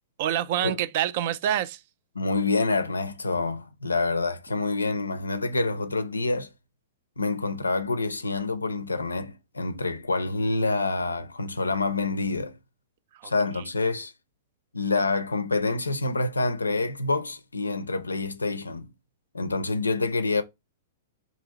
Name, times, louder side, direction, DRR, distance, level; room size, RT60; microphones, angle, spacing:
voice 1, 0.2-1.8 13.1-13.6, right 11 dB, 50° right, 0.3 m, -27 dB
voice 2, 2.2-6.5 7.2-12.6 13.2-14.1 14.7-18.9 19.3-20.4, left 3 dB, 80° left, 0.4 m, -27 dB
2.9 x 2.6 x 3.9 m
figure-of-eight pair, 105°, 0 cm